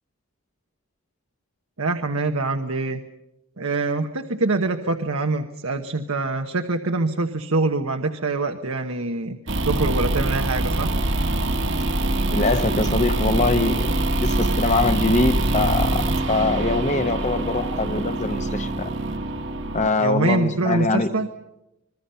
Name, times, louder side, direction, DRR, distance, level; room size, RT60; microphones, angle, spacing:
voice 1, 1.8-3.0 3.6-9.4 9.6-10.9 20.0-21.3, right 3 dB, 80° right, 5 dB, 1.2 m, -24 dB
sound 1, 9.5-19.9, right 2 dB, 55° right, 1.6 m, -24 dB
voice 2, 12.3-13.9 14.2-19.0 19.7-21.1, left 3 dB, 35° left, 7 dB, 1.0 m, -23 dB
26.5 x 21.5 x 5.7 m, 0.87 s
head